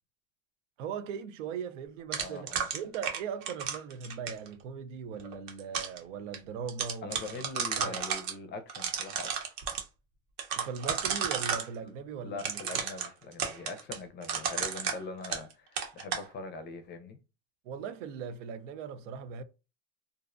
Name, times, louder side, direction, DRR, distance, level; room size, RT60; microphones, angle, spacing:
voice 1, 0.8-7.5 7.8-8.0 10.5-12.6 17.6-19.4, right 6 dB, 80° right, 0.5 m, -39 dB
sound 1, 2.1-4.5 5.2-6.0 6.3-6.4 6.7-8.3 8.7-9.8 10.4-11.7 12.4-15.5 15.8-16.3, right 7 dB, 55° right, 0.8 m, -33 dB
voice 2, 2.2-2.7 7.0-9.3 11.8-11.9 12.2-17.2, left 3 dB, 30° left, 0.5 m, -42 dB
2.5 x 2.0 x 2.4 m
supercardioid pair, 105°, 36 cm